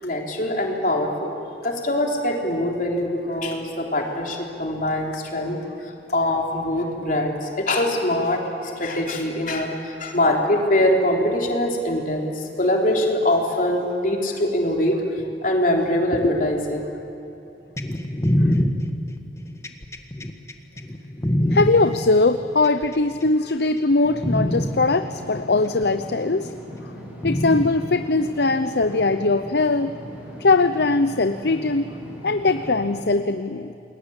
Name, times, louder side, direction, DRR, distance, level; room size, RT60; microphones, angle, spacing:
voice 1, 0.0-1.4 1.6-5.6 5.8-14.9 15.4-16.9, left 1 dB, 50° left, 0 dB, 3.8 m, -23 dB
sound 1, 17.8-21.7 22.6-23.3 23.8-23.9 24.2-24.7 25.8-25.9 27.2-27.7 28.8-28.9, equal, 15° left, 1.5 m, -23 dB
voice 2, 21.5-26.5 27.2-29.9 30.4-31.9 32.2-33.7, left 3 dB, 65° left, 10 dB, 0.7 m, -20 dB
Engine / Mechanisms, 24.0-33.0, equal, 10° right, 5.7 m, -39 dB
28.5 x 21.5 x 8.9 m, 2.7 s
head